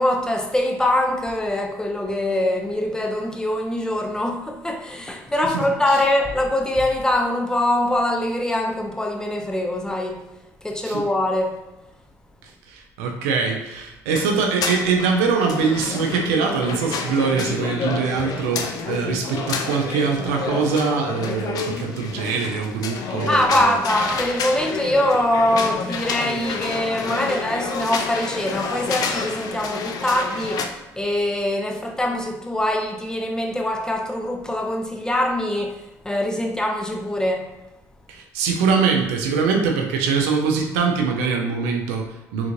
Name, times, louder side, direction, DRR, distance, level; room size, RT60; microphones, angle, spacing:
voice 1, 0.0-10.2 10.6-11.6 23.3-37.5, left 1 dB, 10° left, 0.6 m, -23 dB
voice 2, 5.5-6.0 10.8-11.0 12.4-23.8 38.1-42.5, right 5 dB, 90° right, 0.4 m, -23 dB
sound 1, 14.1-30.7, left 5 dB, 60° left, 0.4 m, -29 dB
3.5 x 2.5 x 3.0 m
supercardioid pair, 70°, 7 cm